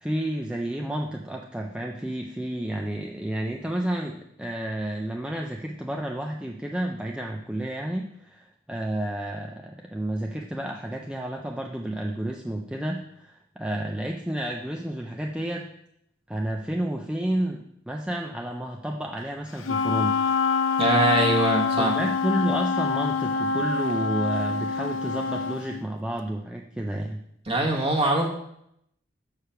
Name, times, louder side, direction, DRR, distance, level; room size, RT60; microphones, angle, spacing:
voice 1, 0.0-15.7 16.3-20.2 21.8-27.2, right 1 dB, 5° right, 1 dB, 0.4 m, -31 dB
Wind instrument woodwind instrument, 19.6-25.7, left 5 dB, 90° left, 0.5 m, -25 dB
voice 2, 20.8-21.9 27.4-28.3, right 2 dB, 30° right, 0 dB, 1.4 m, -22 dB
6.4 x 4.9 x 5.7 m, 0.76 s
head